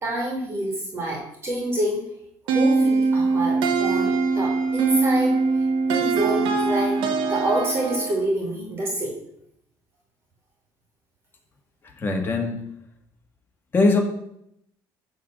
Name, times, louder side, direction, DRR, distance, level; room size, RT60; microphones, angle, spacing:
voice 1, 0.0-2.0 2.5-5.4 5.9-9.1, right 1 dB, 30° right, -1 dB, 2.5 m, -27 dB
sound 1, 2.5-8.3, right 4 dB, 85° right, 1.2 m, -22 dB
voice 2, 12.0-12.6 13.7-14.0, left 3 dB, 25° left, 2 dB, 1.9 m, -21 dB
11.5 x 4.0 x 7.6 m, 0.77 s
cardioid pair, 135°, 8 cm